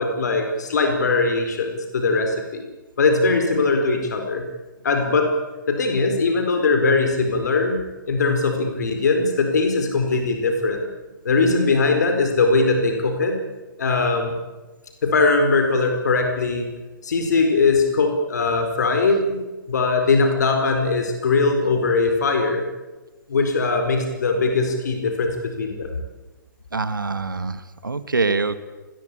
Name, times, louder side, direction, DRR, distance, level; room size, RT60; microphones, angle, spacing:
voice 1, 0.0-2.7 3.0-4.4 4.8-5.3 5.7-10.8 11.2-13.4 13.8-14.4 15.0-16.7 17.0-19.4 19.7-22.7 23.3-26.0, left 3 dB, 55° left, 4 dB, 4.7 m, -20 dB
voice 2, 26.7-28.6, right 4 dB, 75° right, 12 dB, 1.8 m, -24 dB
26.5 x 20.5 x 8.6 m, 1.2 s
figure-of-eight pair, 125°, 11 cm